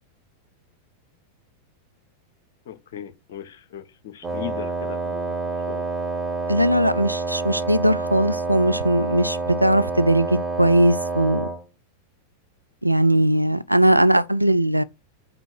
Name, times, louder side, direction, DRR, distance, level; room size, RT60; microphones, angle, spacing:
voice 1, 2.6-5.4 5.7-5.9, left 10 dB, 55° left, 1.1 m, -38 dB
Wind instrument woodwind instrument, 4.2-11.6, right 3 dB, 25° right, 1.7 m, -28 dB
voice 2, 6.5-11.5 12.8-14.8, right 1 dB, 90° right, 0.4 m, -19 dB
5.9 x 5.1 x 6.2 m
figure-of-eight pair, 90°, 0 cm